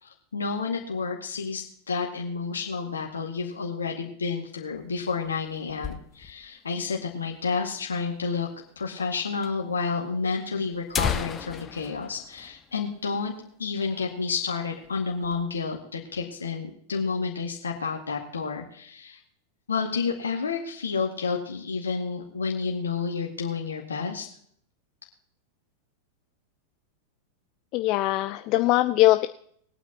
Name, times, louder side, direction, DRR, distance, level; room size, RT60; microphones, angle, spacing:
voice 1, 0.0-8.5 8.8-13.3 13.6-19.2 19.7-24.3, left 5 dB, 70° left, 0 dB, 2.0 m, -30 dB
sound 1, 4.7-6.6 6.9-7.0 7.2-7.3 8.0-8.1 9.0-9.1 9.4-9.5 10.3-10.4 10.7-13.3 13.6-13.8 14.2-14.4 14.8-15.4, left 7 dB, 20° left, 1.0 m, -34 dB
voice 2, 27.7-29.3, left 17 dB, 40° left, 10 dB, 0.5 m, -21 dB
21.5 x 9.2 x 2.9 m, 0.64 s
figure-of-eight pair, 90°, 0 cm